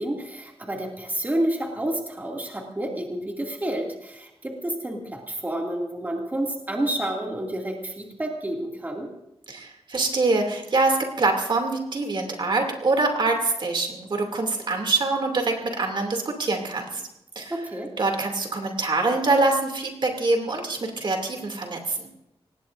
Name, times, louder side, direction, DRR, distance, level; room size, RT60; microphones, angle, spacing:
voice 1, 0.0-9.1 17.5-17.9, right 1 dB, 15° right, -1 dB, 2.4 m, -29 dB
voice 2, 9.5-17.0 17.4-17.5 18.0-22.1, right 3 dB, 50° right, 3 dB, 2.6 m, -24 dB
25.5 x 19.5 x 2.6 m, 0.86 s
wide cardioid pair, 170°, 10 cm